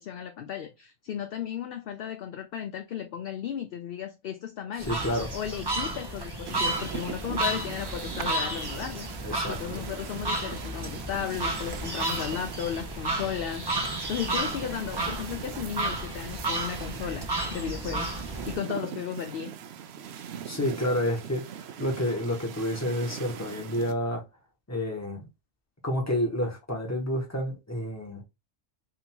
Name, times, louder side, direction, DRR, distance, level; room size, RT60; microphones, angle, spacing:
voice 1, 0.0-4.9 5.3-9.1 9.5-18.2 18.5-19.5, left 9 dB, 65° left, 0.6 m, -35 dB
voice 2, 4.8-5.3 9.2-9.8 20.4-21.4 21.8-24.2 24.7-25.2 25.8-28.2, left 1 dB, 10° left, 1.2 m, -29 dB
sound 1, 4.8-18.6, right 2 dB, 20° right, 0.8 m, -32 dB
sound 2, 6.5-23.9, right 8 dB, 65° right, 0.7 m, -41 dB
3.6 x 2.7 x 4.4 m
omnidirectional pair, 1.4 m